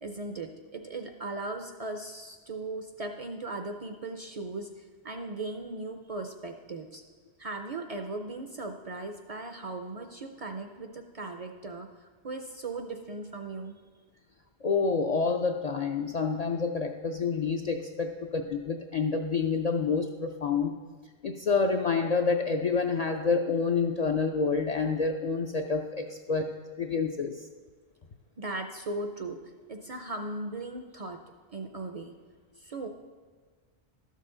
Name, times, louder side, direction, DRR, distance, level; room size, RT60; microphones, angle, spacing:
voice 1, 0.0-7.0 7.4-13.8 28.4-29.4 29.7-31.2 31.5-32.1 32.6-32.9, right 2 dB, 45° right, 5 dB, 0.5 m, -38 dB
voice 2, 14.6-20.7 21.2-26.4 26.8-27.5, left 5 dB, 55° left, 3 dB, 0.4 m, -28 dB
12.0 x 6.6 x 3.8 m, 1.5 s
omnidirectional pair, 1.1 m